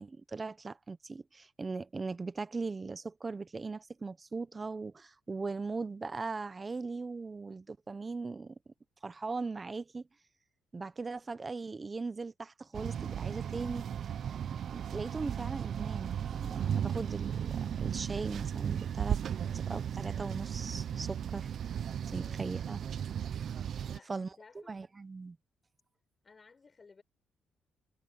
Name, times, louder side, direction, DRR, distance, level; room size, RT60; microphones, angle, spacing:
voice 1, 0.0-8.5 9.0-10.0 10.7-13.9 14.7-19.2 19.7-21.5 22.1-22.8 24.1-24.3 24.7-25.4, right 4 dB, 25° right, 1.0 m, -39 dB
sound 1, 12.7-24.0, right 9 dB, 60° right, 0.7 m, -35 dB
voice 2, 22.0-22.5 23.8-24.7 26.2-27.0, left 4 dB, 35° left, 6.7 m, -58 dB
cardioid pair, 90°, 0 cm